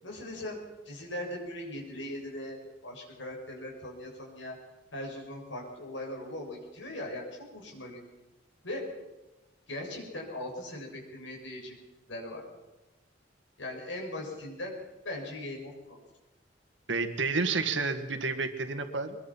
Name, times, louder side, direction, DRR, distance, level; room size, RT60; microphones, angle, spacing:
voice 1, 0.0-0.6 0.9-4.6 4.9-8.0 8.6-8.8 9.7-11.8 12.1-12.4 13.6-14.7 15.0-16.0, left 1 dB, 85° left, 0 dB, 7.4 m, -39 dB
voice 2, 16.9-19.2, right 4 dB, 80° right, 8 dB, 2.0 m, -30 dB
23.5 x 22.0 x 5.8 m, 1.0 s
head